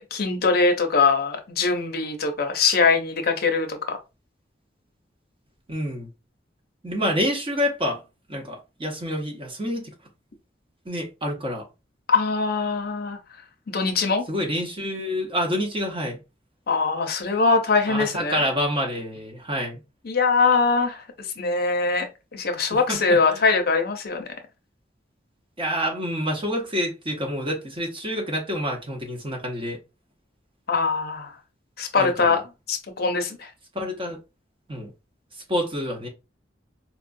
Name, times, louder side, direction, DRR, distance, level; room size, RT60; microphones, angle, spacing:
voice 1, 0.1-4.0 12.1-13.2 13.7-14.3 16.7-18.4 20.0-21.0 21.4-22.1 22.3-24.2 30.7-31.3 31.8-32.4 32.7-33.5, left 4 dB, 60° left, 0.7 m, -22 dB
voice 2, 5.7-6.1 6.8-8.0 8.3-9.9 10.8-11.6 14.3-16.2 17.9-19.8 22.9-23.4 25.6-29.8 32.0-32.4 33.7-34.2 34.7-34.9 35.5-36.1, equal, 30° right, 1.0 m, -27 dB
4.4 x 2.4 x 2.6 m
head